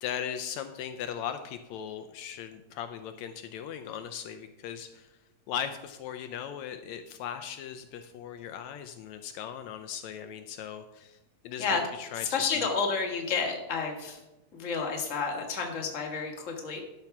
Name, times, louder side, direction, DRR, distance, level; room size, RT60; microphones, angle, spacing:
voice 1, 0.0-5.1 5.5-11.2 11.4-12.7, left 9 dB, 80° left, 8 dB, 1.9 m, -38 dB
voice 2, 12.1-14.2 14.5-16.8, left 5 dB, 30° left, 1 dB, 1.7 m, -30 dB
12.0 x 6.0 x 5.9 m, 1.0 s
omnidirectional pair, 3.3 m